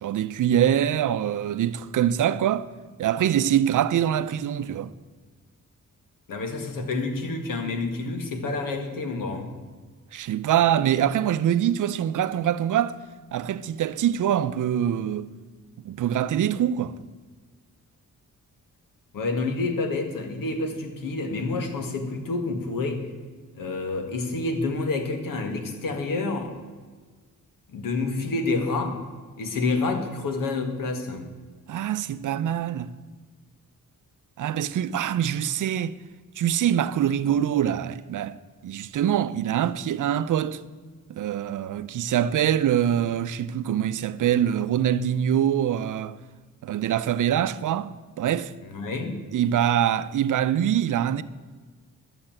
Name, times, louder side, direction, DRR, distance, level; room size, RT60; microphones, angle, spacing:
voice 1, 0.0-2.7 3.0-4.9 10.1-13.0 13.3-15.3 15.8-17.0 31.7-32.9 34.4-36.0 36.4-38.4 38.6-40.6 41.1-46.2 46.6-47.9 48.2-48.5 49.3-51.2, right 10 dB, 70° right, 0.6 m, -24 dB
voice 2, 6.3-9.5 19.1-23.0 23.5-26.5 27.7-29.0 29.4-31.3 48.6-49.2, left 3 dB, 85° left, 1.9 m, -28 dB
12.0 x 6.9 x 8.8 m
wide cardioid pair, 145°, 32 cm